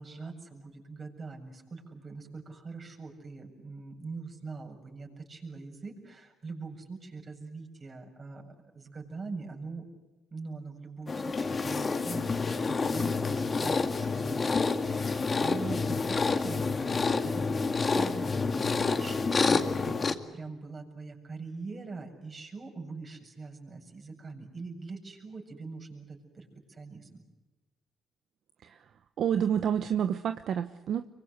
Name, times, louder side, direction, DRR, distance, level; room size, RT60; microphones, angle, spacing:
voice 1, 0.0-9.9 10.3-27.2, right 4 dB, 40° right, 3 dB, 7.5 m, -43 dB
sound 1, 11.1-20.1, left 4 dB, 35° left, 2.2 m, -28 dB
voice 2, 29.2-31.1, right 8 dB, 65° right, 9 dB, 1.0 m, -29 dB
25.5 x 24.0 x 8.1 m, 1.1 s
cardioid pair, 75°, 0 cm